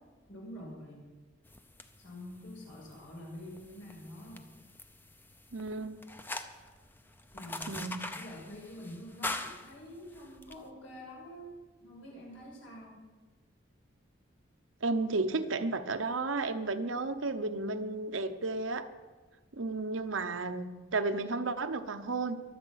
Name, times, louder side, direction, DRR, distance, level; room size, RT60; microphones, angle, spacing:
voice 1, 0.3-1.1 2.0-4.5 7.3-11.5 11.8-13.0, equal, 85° left, -2 dB, 6.4 m, -47 dB
sound 1, 1.5-10.6, left 2 dB, 10° left, 0.6 m, -44 dB
voice 2, 5.5-6.0 7.7-8.1 14.8-18.9 19.5-22.4, right 3 dB, 80° right, 9 dB, 0.9 m, -33 dB
23.5 x 8.0 x 5.8 m, 1.3 s
head